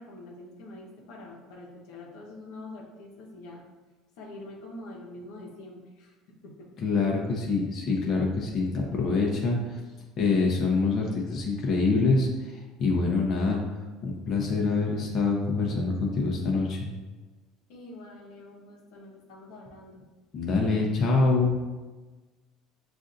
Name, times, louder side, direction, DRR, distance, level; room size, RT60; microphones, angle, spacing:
voice 1, 0.0-3.7 4.2-6.7 17.7-20.1, left 2 dB, 80° left, -1 dB, 0.9 m, -45 dB
voice 2, 6.8-9.8 10.2-13.6 14.0-16.8 20.3-21.6, left 3 dB, 45° left, -1 dB, 0.8 m, -25 dB
7.0 x 2.5 x 2.6 m, 1.2 s
supercardioid pair, 110°, 0 cm